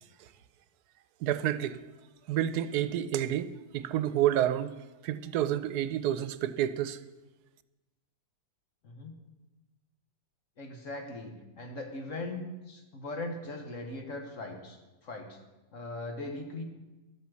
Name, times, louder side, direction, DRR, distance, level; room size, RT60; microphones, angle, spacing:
voice 1, 1.2-1.8 2.3-4.7 5.0-7.0, right 11 dB, 90° right, 1.2 m, -29 dB
voice 2, 10.6-15.4 15.7-16.6, left 2 dB, 55° left, 1.7 m, -40 dB
12.5 x 8.4 x 6.4 m
omnidirectional pair, 1.7 m